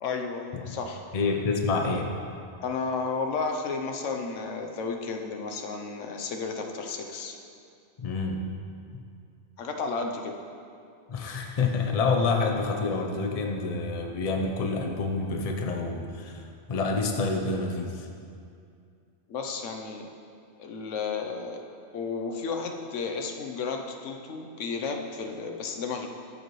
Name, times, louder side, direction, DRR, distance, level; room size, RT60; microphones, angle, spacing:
voice 1, 0.0-1.1 2.6-7.4 9.6-10.3 19.3-20.1 20.6-21.6 21.9-26.1, left 4 dB, 85° left, 3 dB, 1.1 m, -33 dB
voice 2, 1.1-2.1 8.0-8.4 11.1-16.4 16.7-18.1, left 4 dB, 40° left, 2 dB, 0.6 m, -27 dB
13.5 x 5.4 x 3.1 m, 2.4 s
omnidirectional pair, 1.2 m